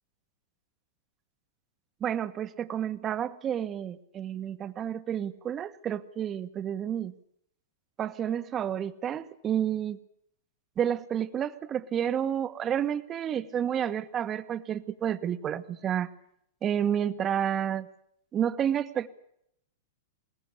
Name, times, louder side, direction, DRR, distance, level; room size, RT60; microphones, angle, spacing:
voice 1, 2.0-7.1 8.0-10.0 10.8-16.1 16.6-17.9 18.3-19.1, right 9 dB, 30° right, 12 dB, 1.5 m, -30 dB
21.5 x 19.5 x 8.5 m, 0.72 s
hypercardioid pair, 110°, 0 cm